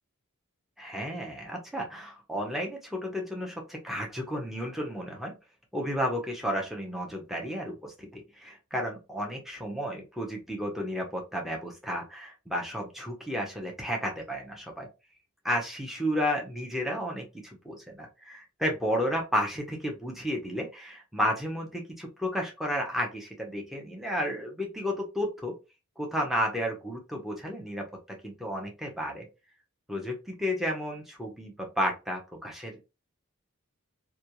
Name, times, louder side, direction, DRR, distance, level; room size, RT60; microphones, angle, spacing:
voice 1, 0.8-5.4 5.7-14.9 15.4-25.6 26.0-29.3 29.9-32.8, equal, ahead, 0 dB, 0.6 m, -32 dB
2.4 x 2.3 x 2.8 m, 0.27 s
head